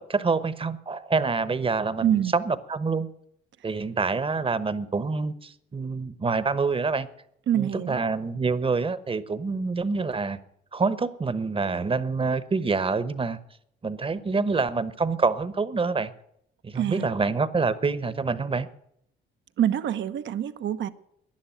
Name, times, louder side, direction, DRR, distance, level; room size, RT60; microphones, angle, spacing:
voice 1, 0.0-3.1 3.6-7.1 7.5-10.4 10.7-13.4 13.8-16.1 16.6-18.7, right 4 dB, 25° right, 1.0 m, -26 dB
voice 2, 2.0-2.3 7.5-8.0 16.7-17.1 19.6-20.9, right 10 dB, 70° right, 1.0 m, -25 dB
12.0 x 10.5 x 9.1 m
cardioid pair, 90°, 20 cm